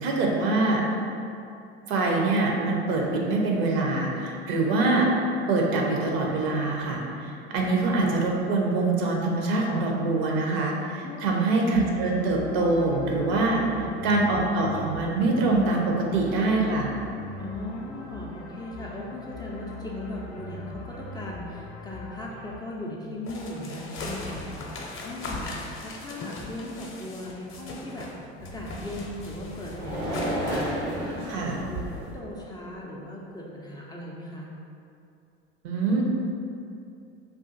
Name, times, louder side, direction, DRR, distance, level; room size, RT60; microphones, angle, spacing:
voice 1, 0.0-0.8 1.9-5.1 5.5-13.6 14.0-16.9 31.3-31.6 35.6-36.0, right 2 dB, 65° right, -1 dB, 0.6 m, -24 dB
voice 2, 11.0-11.3 13.5-14.0 17.4-25.5 25.8-28.1 28.4-34.5, left 1 dB, 15° left, -4 dB, 0.3 m, -38 dB
sound 1, 11.7-22.6, left 3 dB, 85° left, 0.5 m, -42 dB
sound 2, 23.3-28.2 28.4-30.7, left 2 dB, 40° left, 0.6 m, -38 dB
sound 3, 28.4-32.1, right 1 dB, 85° right, 1.4 m, -33 dB
2.6 x 2.4 x 3.6 m, 2.6 s
figure-of-eight pair, 65°, 34 cm